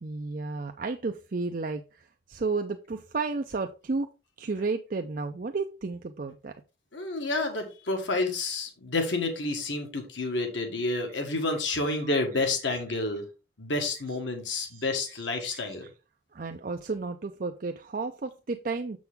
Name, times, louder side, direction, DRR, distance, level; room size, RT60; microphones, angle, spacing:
voice 1, 0.0-4.1 4.4-6.5 11.1-11.2 11.9-12.0 14.7-14.9 15.2-15.3 15.5-15.9 16.3-19.0, right 3 dB, 50° right, 0.5 m, -33 dB
voice 2, 6.9-13.2 13.6-15.9, left 2 dB, 85° left, 1.7 m, -29 dB
6.9 x 6.1 x 3.6 m
head